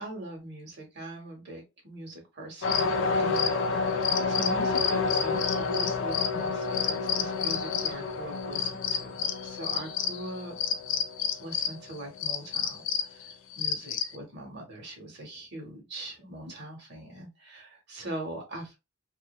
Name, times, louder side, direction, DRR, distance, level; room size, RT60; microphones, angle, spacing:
voice 1, 0.0-10.6 11.4-18.8, right 1 dB, 60° right, 2 dB, 0.9 m, -42 dB
sound 1, 2.6-14.2, left 5 dB, 70° left, 0.4 m, -28 dB
2.7 x 2.0 x 2.3 m, 0.24 s
head